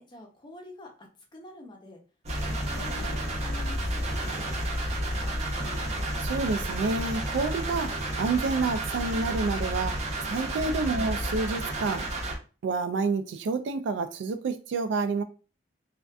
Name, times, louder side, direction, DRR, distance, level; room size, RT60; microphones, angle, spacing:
voice 1, 0.0-2.0 2.4-5.4, left 2 dB, 25° left, 0.6 m, -48 dB
sound 1, 2.2-12.4, right 1 dB, 40° right, 0.7 m, -31 dB
voice 2, 6.2-10.0 10.2-12.1 12.6-15.2, right 4 dB, 85° right, 0.3 m, -29 dB
2.5 x 2.2 x 2.3 m
head